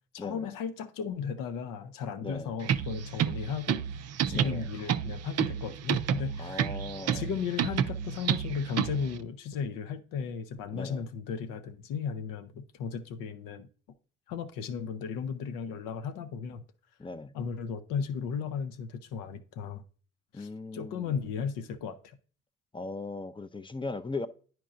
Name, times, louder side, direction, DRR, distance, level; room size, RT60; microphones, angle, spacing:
voice 1, 0.1-3.9 4.3-6.8 7.1-13.7 14.3-16.6 17.3-19.8 20.3-22.2, left 6 dB, 75° left, 0.7 m, -35 dB
voice 2, 2.2-2.5 4.3-4.7 6.4-7.3 10.7-11.0 17.0-17.3 20.3-21.2 22.7-24.3, left 3 dB, 15° left, 0.5 m, -38 dB
sound 1, 2.6-9.2, right 9 dB, 50° right, 0.5 m, -30 dB
10.0 x 4.6 x 2.5 m
hypercardioid pair, 50°, 33 cm